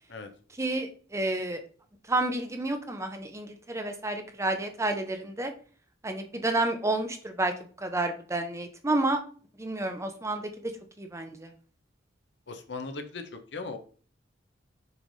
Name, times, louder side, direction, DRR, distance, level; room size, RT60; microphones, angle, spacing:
voice 1, 0.6-1.6 2.1-5.5 6.0-7.5 7.8-9.2 9.6-10.7 11.0-11.5, right 2 dB, 15° right, 6 dB, 0.7 m, -30 dB
voice 2, 12.5-13.8, left 3 dB, 65° left, 7 dB, 0.9 m, -38 dB
7.0 x 3.3 x 4.0 m, 0.42 s
head